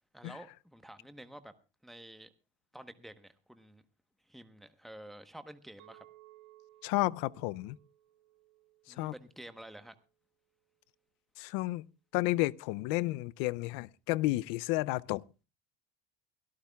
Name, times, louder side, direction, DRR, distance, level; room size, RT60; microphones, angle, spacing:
voice 1, 0.1-1.5 1.8-2.3 2.7-3.8 4.3-6.0 8.9-10.0, right 1 dB, ahead, 1.1 m, -50 dB
Chink clink, 5.8-10.1, right 16 dB, 65° right, 2.1 m, -61 dB
voice 2, 6.8-7.8 9.0-9.1 11.4-11.9 12.1-15.2, left 19 dB, 75° left, 0.6 m, -31 dB
24.0 x 13.0 x 2.3 m
supercardioid pair, 90°, 33 cm